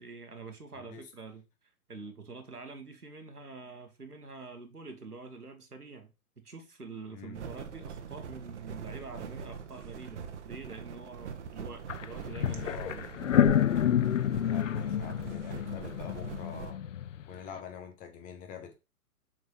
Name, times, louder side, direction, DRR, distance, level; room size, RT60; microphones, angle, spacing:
voice 1, 0.0-1.4 1.9-13.1, right 4 dB, 90° right, 1.9 m, -46 dB
voice 2, 0.7-1.1 7.1-7.4 12.6-13.0 14.4-16.8 17.3-18.7, left 7 dB, 20° left, 1.2 m, -46 dB
sound 1, 7.3-16.7, right 7 dB, 50° right, 1.4 m, -42 dB
sound 2, 11.9-12.0 12.3-17.2, left 10 dB, 60° left, 0.7 m, -28 dB
7.5 x 4.6 x 3.3 m
figure-of-eight pair, 120°, 44 cm